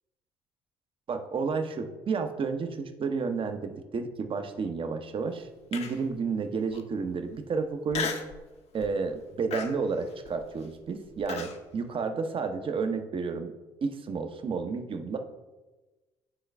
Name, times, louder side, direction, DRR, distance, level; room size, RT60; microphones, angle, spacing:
voice 1, 1.1-8.1 8.7-13.5 13.8-15.2, right 5 dB, 45° right, 7 dB, 0.9 m, -31 dB
Human voice, 5.7-6.2 6.7-6.8 7.9-8.4 8.8-9.1 9.5-11.6, left 6 dB, 55° left, 0.9 m, -35 dB
9.1 x 3.9 x 3.4 m, 1.2 s
hypercardioid pair, 60°, 13 cm